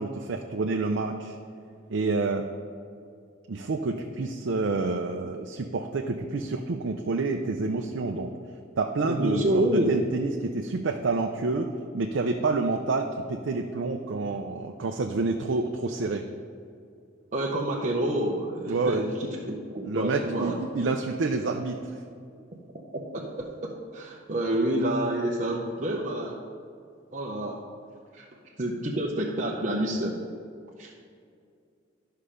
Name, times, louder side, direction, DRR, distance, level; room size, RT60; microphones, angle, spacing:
voice 1, 0.0-1.4 1.9-2.5 3.5-8.3 8.8-16.3 18.7-19.0 19.8-22.0, right 3 dB, 80° right, 3 dB, 0.5 m, -28 dB
voice 2, 9.0-9.9 17.3-20.6 22.9-26.4 27.1-27.6 28.1-30.2 30.8-30.9, right 1 dB, 40° right, -3 dB, 0.7 m, -28 dB
11.5 x 5.6 x 5.0 m, 2.4 s
head